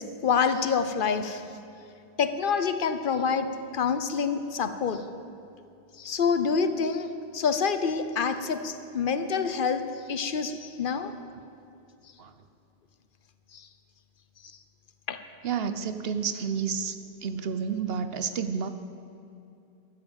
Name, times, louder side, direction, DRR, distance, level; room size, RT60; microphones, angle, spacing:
voice 1, 0.0-1.5 2.2-5.0 6.0-11.1 13.5-13.7 15.1-15.2, left 5 dB, 55° left, 10 dB, 1.0 m, -27 dB
voice 2, 15.4-18.7, right 6 dB, 65° right, 10 dB, 1.0 m, -30 dB
14.0 x 13.5 x 7.2 m, 2.6 s
omnidirectional pair, 1.1 m